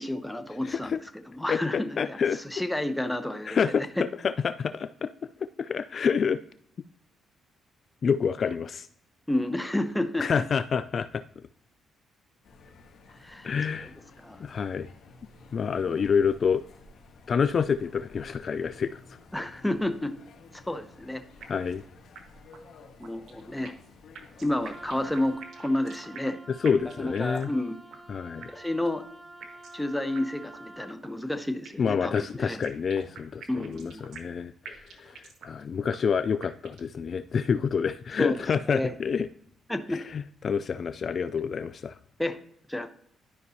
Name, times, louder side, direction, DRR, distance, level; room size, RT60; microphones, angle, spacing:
voice 1, 0.0-4.0 9.3-10.4 13.2-13.9 14.2-14.4 15.8-16.0 19.3-20.2 20.5-21.2 23.0-23.7 24.4-26.4 26.8-27.7 28.5-29.0 29.7-32.6 33.5-34.1 38.2-38.4 38.7-38.9 39.7-40.0 42.2-42.4 42.7-42.9, left 1 dB, 5° left, 8 dB, 0.8 m, -31 dB
voice 2, 0.6-1.0 1.5-2.4 3.5-3.8 4.2-5.1 5.6-6.4 8.0-8.9 10.2-11.2 13.4-14.0 14.4-14.9 15.5-16.6 17.3-19.0 21.5-21.8 26.6-27.5 28.1-28.5 31.8-39.3 39.9-42.0, left 6 dB, 50° left, 13 dB, 0.3 m, -28 dB
sound 1, 12.4-25.4, left 3 dB, 70° left, 1.4 m, -53 dB
sound 2, 21.4-21.8 22.2-22.3 22.5-22.6 23.0-23.9 24.2-26.4 26.7-27.6 27.9-28.0 28.4-28.9 29.4-29.8 30.2-30.3 30.5-30.6 31.0-31.9 32.2-34.4 34.7-35.6 35.9-36.0 36.4-36.9, right 6 dB, 70° right, 1.4 m, -46 dB
Wind instrument woodwind instrument, 24.7-31.0, right 1 dB, 15° right, 0.9 m, -48 dB
12.0 x 5.3 x 2.8 m, 0.67 s
cardioid pair, 90°, 0 cm